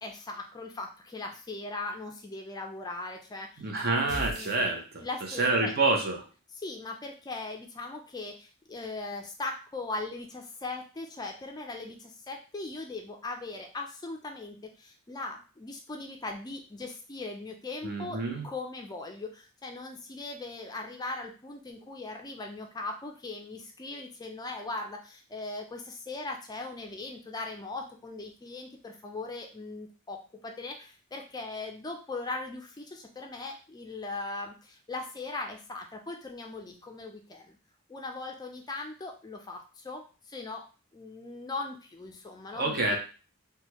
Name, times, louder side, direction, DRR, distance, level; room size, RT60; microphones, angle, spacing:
voice 1, 0.0-3.7 4.0-4.7 5.0-5.7 6.5-37.6 37.9-40.6 40.9-43.0, left 3 dB, 20° left, 3 dB, 0.3 m, -39 dB
voice 2, 3.6-5.1 5.4-6.2 17.8-18.4 42.5-43.0, right 3 dB, 50° right, 2 dB, 0.7 m, -27 dB
sound 1, 4.1-5.3, equal, 15° right, 1.0 m, -39 dB
3.2 x 2.3 x 2.9 m, 0.36 s
head